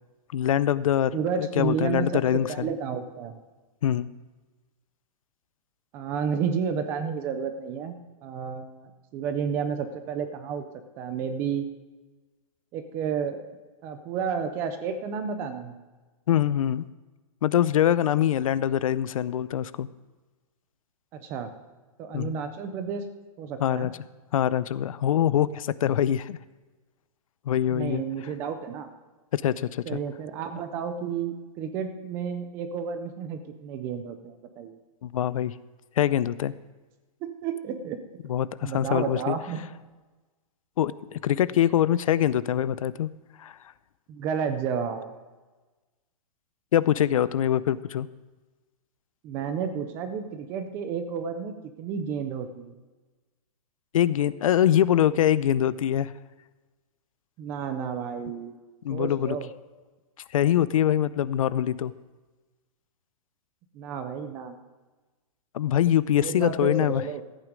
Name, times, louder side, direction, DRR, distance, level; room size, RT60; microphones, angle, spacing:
voice 1, 0.3-2.7 3.8-4.1 16.3-16.8 17.4-19.9 22.1-22.3 23.6-23.9 24.3-26.4 27.5-28.0 29.3-30.0 35.0-35.5 36.0-36.5 38.3-39.4 40.8-43.1 43.4-43.6 46.7-48.1 53.9-56.1 58.8-59.4 60.3-61.9 65.5-67.0, left 10 dB, 65° left, 18 dB, 0.5 m, -24 dB
voice 2, 1.1-3.3 5.9-8.0 8.2-10.6 11.0-11.7 12.7-13.4 13.8-15.8 21.1-21.5 22.0-23.0 23.4-23.9 27.7-28.9 29.9-34.8 37.2-38.0 38.2-38.3 38.6-39.6 44.1-45.1 49.2-52.7 57.4-58.6 58.9-59.5 63.7-64.6 66.2-67.2, right 6 dB, 15° right, 9 dB, 0.4 m, -31 dB
14.0 x 9.0 x 5.1 m, 1.2 s
hypercardioid pair, 175°, 19 cm